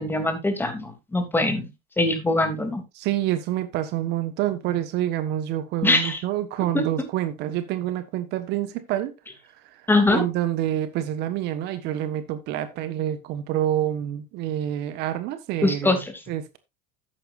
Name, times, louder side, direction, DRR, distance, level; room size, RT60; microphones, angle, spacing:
voice 1, 0.0-1.7 2.0-2.8 5.8-6.2 6.7-6.8 9.9-10.2 15.6-16.1, left 2 dB, 10° left, 2.9 m, -22 dB
voice 2, 2.9-9.1 10.1-16.6, right 12 dB, 60° right, 1.4 m, -27 dB
11.5 x 8.9 x 2.6 m
supercardioid pair, 105°, 19 cm